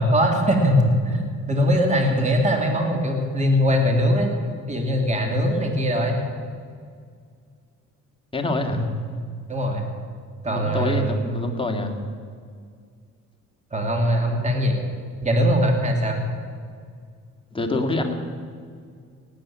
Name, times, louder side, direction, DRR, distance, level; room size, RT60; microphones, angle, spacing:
voice 1, 0.0-4.3 4.7-6.2 8.7-8.9 9.5-9.9 10.4-11.4 13.7-14.8 15.2-16.3, equal, 25° right, 2 dB, 2.6 m, -21 dB
voice 2, 8.3-8.9 10.5-11.9 17.5-18.1, left 2 dB, 15° left, 2 dB, 2.2 m, -26 dB
18.5 x 8.5 x 8.8 m, 2.1 s
cardioid pair, 90°, 30 cm